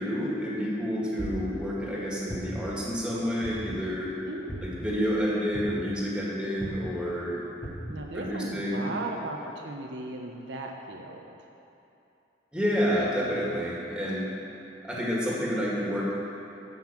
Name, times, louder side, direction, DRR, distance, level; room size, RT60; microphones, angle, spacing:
voice 1, 0.0-4.2 4.6-7.4 8.2-8.9 12.5-14.3 14.8-16.1, equal, 5° right, -6 dB, 2.1 m, -29 dB
sound 1, 1.2-1.6 2.3-2.8 3.4-3.9 4.5-4.9 5.5-6.0 6.6-6.9 7.6-8.0, equal, 10° left, 1.5 m, -37 dB
voice 2, 7.9-11.4, right 2 dB, 70° right, 1 dB, 0.9 m, -37 dB
13.5 x 5.6 x 7.5 m, 2.8 s
head